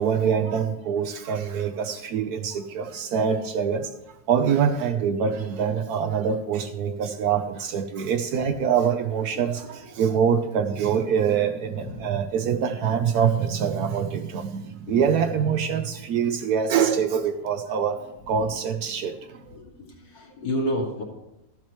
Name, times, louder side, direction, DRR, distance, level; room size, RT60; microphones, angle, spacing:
voice 1, 0.0-3.9 4.3-18.0 18.3-19.4, right 7 dB, 70° right, 8 dB, 1.0 m, -24 dB
voice 2, 6.9-7.3 8.4-8.5 11.7-12.3 14.9-15.0 17.7-17.8 19.1-19.2 19.5-21.0, equal, 75° left, -1 dB, 2.6 m, -32 dB
13.5 x 7.4 x 3.1 m, 0.90 s
omnidirectional pair, 1.9 m